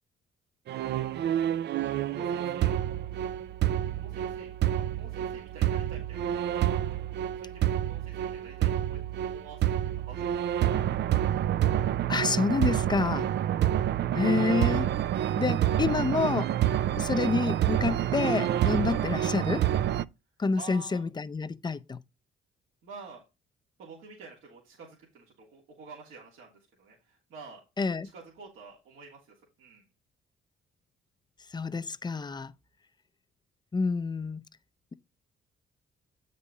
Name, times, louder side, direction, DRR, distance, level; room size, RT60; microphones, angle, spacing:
sound 1, 0.7-20.0, right 11 dB, 60° right, 0.4 m, -28 dB
voice 1, 0.9-1.2 2.1-2.8 3.9-7.0 7.4-10.8 13.0-13.2 18.7-19.0 20.5-21.0 22.8-23.2 23.8-27.6 28.1-29.8, right 4 dB, 90° right, 2.9 m, -49 dB
voice 2, 12.1-13.3 14.1-14.9 15.4-16.5 17.0-19.7 20.4-22.0 27.8-28.1 31.5-32.5 33.7-34.4, left 4 dB, 20° left, 0.5 m, -28 dB
8.4 x 5.3 x 4.1 m
cardioid pair, 90°, 20 cm